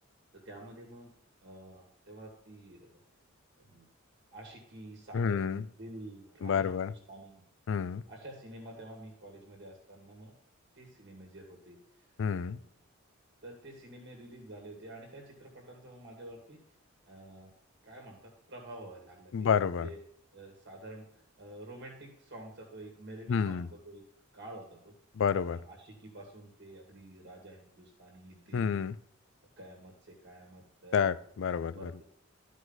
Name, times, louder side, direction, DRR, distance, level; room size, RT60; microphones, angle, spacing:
voice 1, 0.3-1.1 1.4-3.0 3.6-3.9 4.3-7.4 8.1-10.3 10.8-11.8 12.3-12.6 13.4-16.6 17.1-17.5 17.8-20.0 20.3-21.1 21.4-24.0 24.3-24.9 25.5-28.9 29.6-31.1 31.8-32.0, right 1 dB, 55° right, 1 dB, 1.8 m, -49 dB
voice 2, 5.1-5.6 6.4-6.9 7.7-8.0 12.2-12.6 19.3-19.9 23.3-23.7 25.2-25.6 28.5-29.0 30.9-31.9, left 6 dB, 65° left, 17 dB, 0.4 m, -29 dB
12.5 x 4.9 x 4.0 m, 0.68 s
head